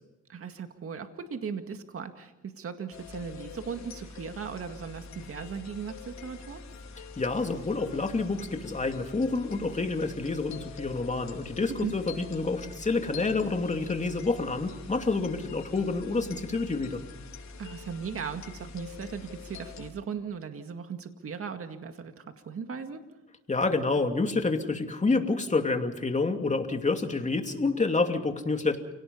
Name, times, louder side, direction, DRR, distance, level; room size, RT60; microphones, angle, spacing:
voice 1, 0.3-6.6 11.8-11.9 17.6-23.0, right 6 dB, 50° right, 6 dB, 2.0 m, -38 dB
sound 1, 2.9-19.9, left 4 dB, 65° left, 4.8 m, -45 dB
voice 2, 7.2-17.0 23.5-28.8, left 3 dB, 25° left, 5 dB, 2.7 m, -28 dB
29.5 x 18.0 x 5.6 m, 1.0 s
cardioid pair, 90°, 30 cm